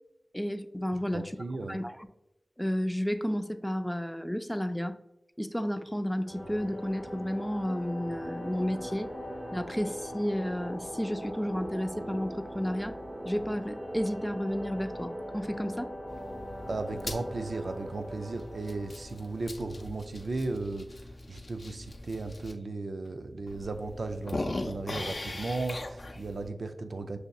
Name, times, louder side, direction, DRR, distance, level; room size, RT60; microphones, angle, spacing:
voice 1, 0.3-1.3 1.7-2.1 2.6-5.0 5.4-9.1 9.5-13.0 13.3-16.0, equal, 5° left, 9 dB, 0.3 m, -32 dB
voice 2, 1.1-1.8 16.7-27.2, right 3 dB, 85° right, 7 dB, 0.3 m, -36 dB
sound 1, 6.3-19.8, equal, 35° right, 0.9 m, -41 dB
sound 2, 16.1-22.5 23.1-23.2 23.5-26.5, left 2 dB, 65° left, 0.5 m, -40 dB
6.2 x 2.7 x 2.3 m, 0.90 s
cardioid pair, 40°, 0 cm